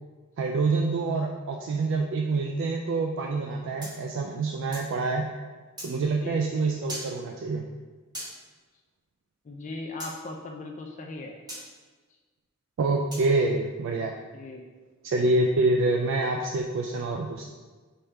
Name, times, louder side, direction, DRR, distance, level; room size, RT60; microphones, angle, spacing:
voice 1, 0.4-5.3 5.8-7.6 12.8-14.2 15.0-17.4, right 3 dB, 60° right, 1 dB, 0.3 m, -26 dB
sound 1, 3.8-4.9 5.8-5.9 6.9-7.1 8.1-8.3 10.0-10.1 11.5-11.6 13.1-13.3, right 1 dB, 20° right, 1.2 m, -38 dB
voice 2, 6.0-6.6 9.4-11.4 14.3-14.6, left 2 dB, 35° left, 2 dB, 0.4 m, -39 dB
4.2 x 3.5 x 3.3 m, 1.3 s
head